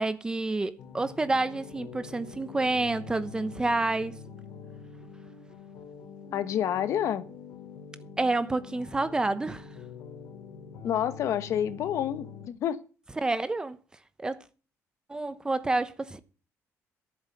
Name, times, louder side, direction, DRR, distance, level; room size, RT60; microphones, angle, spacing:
voice 1, 0.0-4.2 8.2-9.7 13.2-13.8 14.2-14.4 15.1-16.2, right 2 dB, 15° right, 0.9 m, -28 dB
sound 1, 0.8-12.5, left 6 dB, 85° left, 3.0 m, -45 dB
voice 2, 6.3-7.2 10.8-12.8, left 10 dB, 65° left, 1.2 m, -28 dB
11.0 x 7.9 x 7.9 m
cardioid pair, 145°, 6 cm